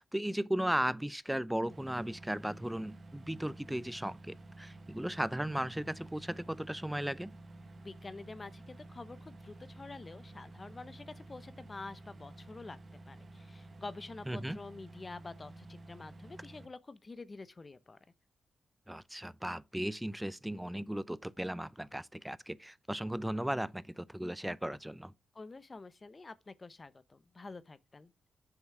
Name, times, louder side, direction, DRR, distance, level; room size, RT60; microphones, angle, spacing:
voice 1, 0.0-7.3 14.3-14.6 18.9-25.1, right 1 dB, 5° right, 0.5 m, -36 dB
sound 1, 1.7-16.7, right 2 dB, 40° right, 1.3 m, -52 dB
voice 2, 7.8-12.8 13.1-18.0 25.3-28.1, left 3 dB, 30° left, 0.9 m, -48 dB
7.5 x 6.1 x 6.0 m
cardioid pair, 105°, 0 cm